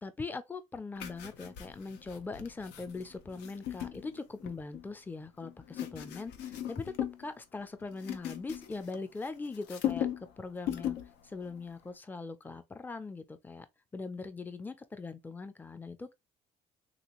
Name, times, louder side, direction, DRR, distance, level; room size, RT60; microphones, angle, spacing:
voice 1, 0.0-10.1 10.4-11.0 11.2-13.7 13.9-16.1, left 3 dB, 10° left, 0.4 m, -41 dB
sound 1, 1.0-4.9 5.4-7.3 7.6-9.3 9.5-10.3 10.6-11.1 11.4-11.7, left 10 dB, 85° left, 0.6 m, -38 dB
3.2 x 2.6 x 3.0 m
cardioid pair, 110°, 17 cm